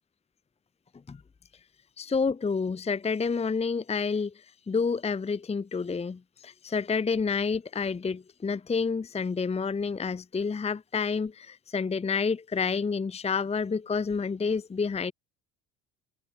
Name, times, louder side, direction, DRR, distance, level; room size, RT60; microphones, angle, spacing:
voice 1, 2.0-15.1, left 5 dB, 15° left, 0.9 m, -29 dB
cardioid pair, 115°, 38 cm